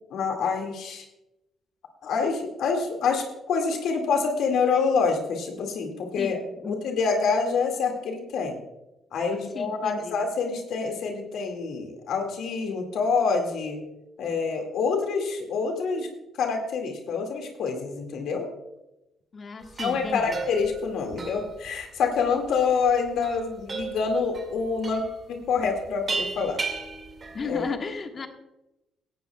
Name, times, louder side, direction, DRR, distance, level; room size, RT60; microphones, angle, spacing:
voice 1, 0.1-1.0 2.0-6.4 6.6-8.6 9.1-13.8 14.2-16.1 16.4-18.5 19.8-25.0 25.3-26.6 27.4-27.6, left 5 dB, 75° left, 3 dB, 2.1 m, -26 dB
voice 2, 6.2-6.7 9.5-10.2 19.3-20.3 27.3-28.3, left 4 dB, 40° left, 5 dB, 1.5 m, -34 dB
sound 1, 19.6-27.7, right 4 dB, 40° right, 2.1 m, -36 dB
16.5 x 12.5 x 2.3 m, 0.91 s
cardioid pair, 90°, 0 cm